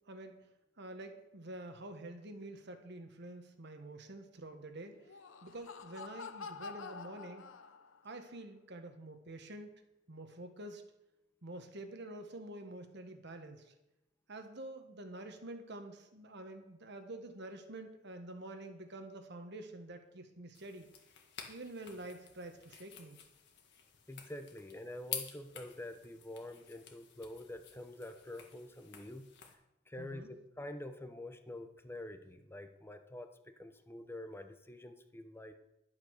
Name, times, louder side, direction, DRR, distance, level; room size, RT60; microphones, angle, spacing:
voice 1, 0.1-0.5 0.8-5.1 5.4-7.6 8.0-9.7 10.1-10.8 11.4-13.7 14.3-20.9 21.5-23.2 30.0-30.3, right 1 dB, 60° right, 7 dB, 1.5 m, -48 dB
Laughter, 4.9-8.1, left 5 dB, 90° left, 0.8 m, -48 dB
sound 1, 20.5-29.5, left 8 dB, 60° left, 1.7 m, -50 dB
voice 2, 24.1-29.3 29.9-33.3 33.6-35.6, left 1 dB, 10° left, 8 dB, 0.9 m, -47 dB
11.5 x 7.7 x 6.5 m, 0.90 s
head